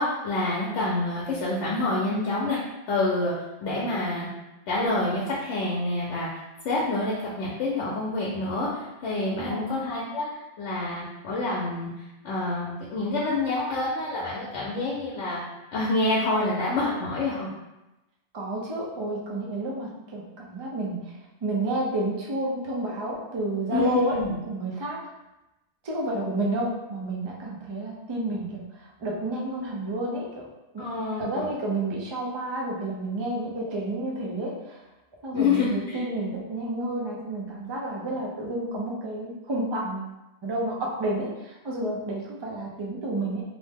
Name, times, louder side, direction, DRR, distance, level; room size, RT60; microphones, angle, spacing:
voice 1, 0.0-2.6 2.9-3.3 3.6-4.3 4.7-6.3 6.6-11.9 12.2-15.4 15.7-17.5 23.7-24.3 30.8-31.5 35.3-36.0, left 2 dB, 80° left, -5 dB, 0.9 m, -27 dB
voice 2, 9.3-9.7 18.3-21.1 21.4-24.2 24.4-25.0 25.8-30.4 30.7-30.8 31.2-34.8 35.2-40.1 40.4-43.4, right 2 dB, 40° right, -2 dB, 0.3 m, -30 dB
2.7 x 2.1 x 3.3 m, 0.98 s
omnidirectional pair, 1.2 m